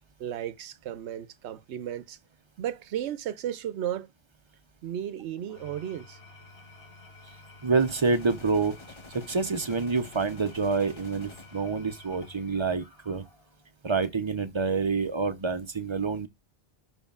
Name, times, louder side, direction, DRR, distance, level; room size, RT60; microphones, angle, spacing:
voice 1, 0.2-2.2 2.6-4.1 4.8-6.2, right 10 dB, 75° right, 0.9 m, -34 dB
Engine / Tools, 5.4-13.7, left 3 dB, 60° left, 1.7 m, -52 dB
voice 2, 7.6-8.8 9.1-13.2 13.8-16.3, right 4 dB, 35° right, 0.5 m, -27 dB
sound 1, 7.8-11.8, left 3 dB, 30° left, 0.7 m, -50 dB
11.0 x 4.3 x 2.4 m
omnidirectional pair, 1.2 m